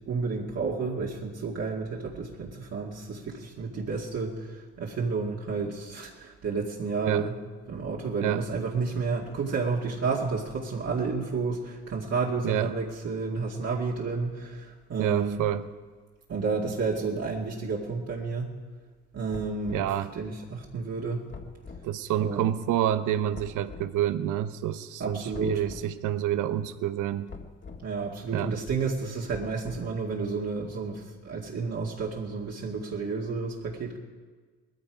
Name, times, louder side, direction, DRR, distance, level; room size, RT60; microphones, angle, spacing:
voice 1, 0.1-7.3 7.7-15.4 16.3-18.5 19.1-21.3 22.2-22.5 25.0-25.6 27.8-34.0, right 4 dB, 55° right, -3 dB, 2.2 m, -31 dB
voice 2, 12.4-12.7 15.0-15.6 19.7-20.1 21.8-27.3 28.3-28.6, right 11 dB, 85° right, 12 dB, 0.9 m, -28 dB
sound 1, 19.3-20.0 21.3-21.9 23.3-23.9 25.3-25.9 27.3-27.9 29.3-30.0, left 4 dB, 40° left, 1.9 m, -43 dB
19.5 x 14.5 x 5.0 m, 1.4 s
cardioid pair, 90°, 30 cm